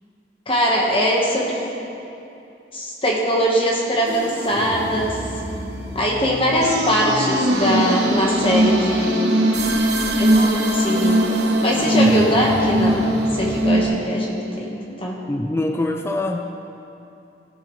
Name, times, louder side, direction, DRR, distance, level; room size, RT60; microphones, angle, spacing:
voice 1, 0.5-1.6 2.7-5.2 5.9-9.4 10.2-11.2 11.6-13.0 13.3-15.2, equal, 30° left, -2 dB, 1.3 m, -21 dB
sound 1, 4.1-13.9, right 1 dB, 70° right, 1.1 m, -21 dB
voice 2, 15.3-16.4, left 2 dB, 15° left, 4 dB, 0.4 m, -23 dB
16.5 x 7.5 x 3.2 m, 2.8 s
head